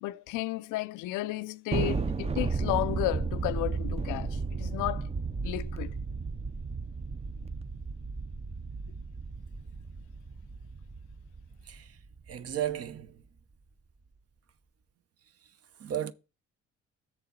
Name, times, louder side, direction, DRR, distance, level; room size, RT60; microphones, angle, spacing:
voice 1, 0.0-5.1 5.4-5.9, left 16 dB, 90° left, 0.5 m, -33 dB
Thunder, 1.7-12.4, right 4 dB, 20° right, 0.5 m, -34 dB
voice 2, 11.7-12.0 12.3-13.2 15.8-16.1, right 10 dB, 50° right, 0.7 m, -34 dB
7.2 x 6.7 x 4.0 m
cardioid pair, 90°, 30 cm